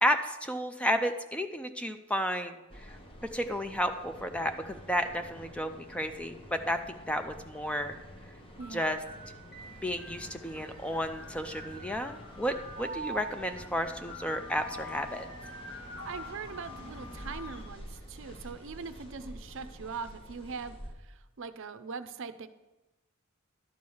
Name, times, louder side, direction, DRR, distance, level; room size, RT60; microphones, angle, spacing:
voice 1, 0.0-2.9 3.3-6.4 6.7-7.9 8.7-9.0 9.8-15.3, equal, 5° left, 7 dB, 0.4 m, -32 dB
sound 1, 2.7-20.9, equal, 25° left, 1.0 m, -49 dB
sound 2, 7.5-7.7 8.6-10.6 11.6-13.1 14.6-17.1, equal, 45° left, 1.7 m, -50 dB
voice 2, 8.6-9.1 16.0-22.5, right 5 dB, 60° right, 11 dB, 0.5 m, -41 dB
sound 3, 9.6-17.6, equal, 75° left, 2.2 m, -44 dB
11.5 x 4.7 x 7.1 m, 1.0 s
head